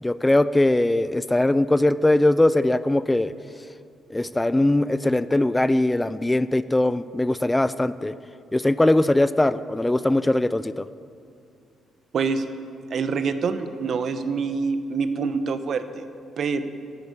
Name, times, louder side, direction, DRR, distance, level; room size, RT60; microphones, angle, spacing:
voice 1, 0.0-3.3 4.1-8.1 8.5-10.9, left 1 dB, 10° left, 15 dB, 0.4 m, -21 dB
voice 2, 12.1-12.4 12.9-16.0 16.4-16.6, right 5 dB, 55° right, 10 dB, 1.0 m, -26 dB
13.0 x 10.5 x 8.3 m, 2.5 s
cardioid pair, 90°, 0 cm